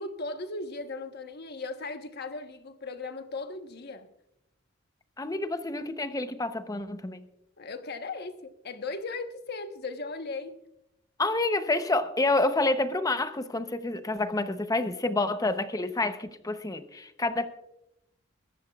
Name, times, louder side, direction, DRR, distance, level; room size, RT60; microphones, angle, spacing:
voice 1, 0.0-4.1 7.6-10.6, left 3 dB, 55° left, 8 dB, 1.1 m, -37 dB
voice 2, 5.2-7.3 11.2-17.5, left 2 dB, 20° left, 10 dB, 0.8 m, -28 dB
21.5 x 14.5 x 2.4 m, 0.84 s
head